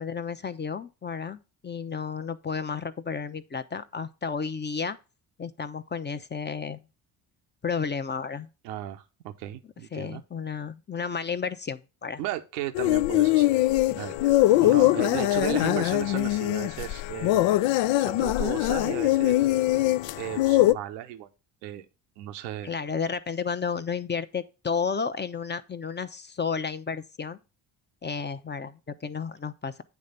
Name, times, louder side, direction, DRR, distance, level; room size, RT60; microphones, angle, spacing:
voice 1, 0.0-5.0 5.4-6.8 7.6-8.5 9.9-12.2 14.6-14.9 22.6-27.4 28.0-29.8, left 6 dB, 20° left, 0.8 m, -32 dB
voice 2, 8.6-10.2 12.2-13.6 13.9-17.5 18.0-19.5 20.1-21.3 21.6-21.8 22.2-22.7, right 13 dB, 80° right, 0.9 m, -35 dB
sound 1, 12.7-20.7, left 16 dB, 65° left, 0.6 m, -22 dB
9.3 x 3.3 x 6.7 m
hypercardioid pair, 55°, 49 cm